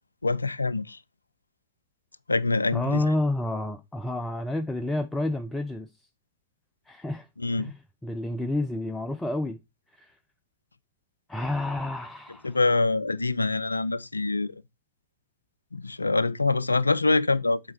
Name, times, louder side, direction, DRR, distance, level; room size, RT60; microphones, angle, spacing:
voice 1, 0.2-1.0 2.3-3.0 7.4-7.7 12.4-14.6 15.7-17.6, left 3 dB, 80° left, 0.3 m, -25 dB
voice 2, 2.7-5.9 6.9-7.3 7.6-9.6 9.9-10.2 11.3-12.6, left 1 dB, 10° left, 0.5 m, -29 dB
7.7 x 4.3 x 4.3 m
figure-of-eight pair, 90°, 0 cm